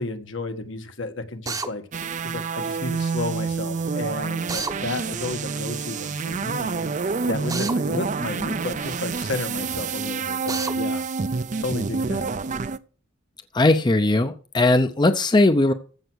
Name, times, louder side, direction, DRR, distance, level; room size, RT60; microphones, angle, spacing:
voice 1, 0.0-11.0 11.6-12.3, left 2 dB, 70° left, 7 dB, 1.5 m, -32 dB
Drill, 1.5-1.7 4.5-4.8 7.5-7.8 10.5-10.7, right 4 dB, 20° right, 0.9 m, -29 dB
sound 1, 1.9-12.8, right 4 dB, 40° right, 0.5 m, -28 dB
voice 2, 13.5-15.7, left 2 dB, 20° left, 9 dB, 0.6 m, -19 dB
15.0 x 5.9 x 6.2 m, 0.40 s
head